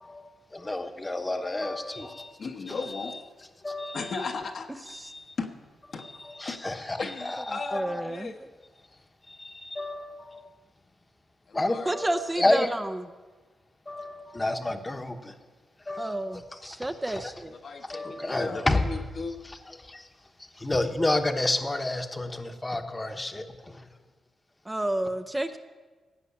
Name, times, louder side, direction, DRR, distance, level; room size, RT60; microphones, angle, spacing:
voice 1, 0.0-2.4 2.7-3.2 3.6-4.2 4.9-5.3 6.0-8.2 9.3-10.5 11.5-12.7 13.9-15.3 15.9-17.3 17.9-19.0 19.4-20.1 20.4-23.9, left 2 dB, 20° left, 6 dB, 1.0 m, -31 dB
voice 2, 2.4-3.2 3.9-4.9 5.4-5.5 5.9-6.0 6.5-6.6 7.0-8.4 11.5-11.9 17.5-19.3, left 4 dB, 60° left, 4 dB, 1.1 m, -36 dB
voice 3, 7.7-8.3 11.9-12.9 16.0-17.5 24.7-25.6, right 1 dB, 15° right, 8 dB, 0.5 m, -30 dB
15.5 x 5.5 x 8.5 m, 1.3 s
cardioid pair, 95°, 0 cm